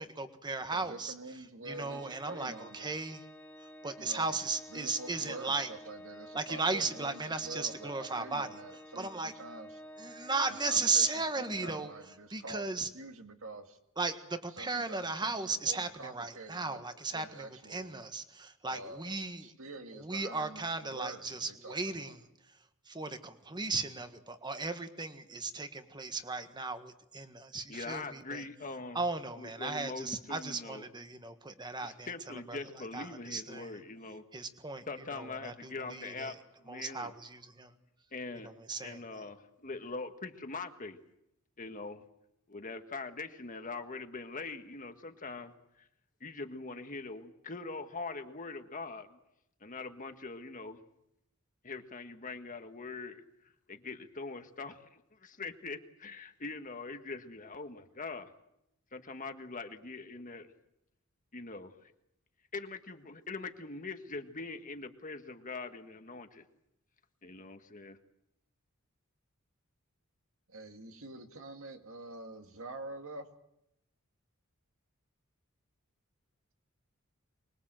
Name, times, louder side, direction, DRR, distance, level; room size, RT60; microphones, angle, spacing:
voice 1, 0.0-1.1 1.6-3.2 3.8-5.7 6.3-8.5 8.9-9.3 10.0-11.9 12.3-12.9 14.0-19.5 19.9-22.2 22.9-28.4 28.9-32.6 32.9-33.7 34.3-34.8 35.1-36.3 36.7-37.7 38.4-39.2, right 3 dB, 20° right, 8 dB, 1.6 m, -36 dB
voice 2, 0.7-2.9 4.0-9.8 10.5-13.8 14.5-16.8 17.1-18.0 18.6-19.2 19.4-22.1 70.5-73.3, right 2 dB, 70° right, 5 dB, 2.2 m, -47 dB
Organ, 1.7-12.5, equal, 10° left, 1.7 m, -51 dB
voice 3, 27.7-29.0 29.3-30.8 31.8-34.2 34.9-36.3 36.6-37.1 38.1-41.0 41.6-42.0 42.5-45.5 46.2-49.2 49.6-50.8 51.6-53.2 53.7-58.3 58.9-60.5 61.3-61.9 62.5-66.4 67.2-68.0, left 3 dB, 40° left, 7 dB, 1.6 m, -42 dB
25.0 x 21.5 x 7.7 m, 0.82 s
head